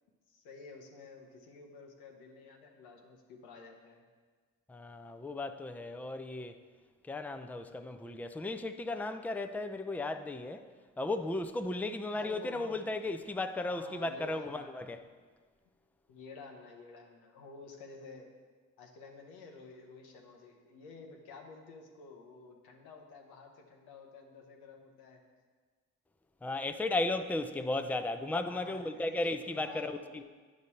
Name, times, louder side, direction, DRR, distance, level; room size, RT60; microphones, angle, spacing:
voice 1, 0.3-4.0 12.1-12.8 13.7-14.7 16.1-18.3 18.8-25.2 27.6-27.9 28.4-30.2, left 4 dB, 90° left, 1.0 m, -51 dB
voice 2, 4.7-6.6 7.1-10.6 11.0-15.0 26.4-30.2, left 2 dB, 5° left, 0.5 m, -35 dB
9.4 x 5.2 x 4.2 m
supercardioid pair, 50°, 36 cm